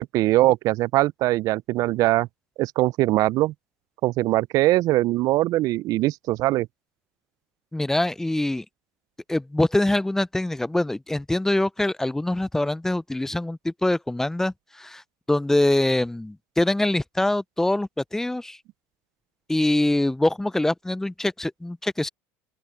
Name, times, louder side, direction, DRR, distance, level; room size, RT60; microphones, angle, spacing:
voice 1, 0.0-2.3 2.6-3.5 4.0-6.7, right 17 dB, 55° right, 0.5 m, -21 dB
voice 2, 7.7-8.6 9.3-15.0 15.3-18.6 19.5-22.1, left 1 dB, 5° left, 0.5 m, -24 dB
open air
hypercardioid pair, 95°, 7 cm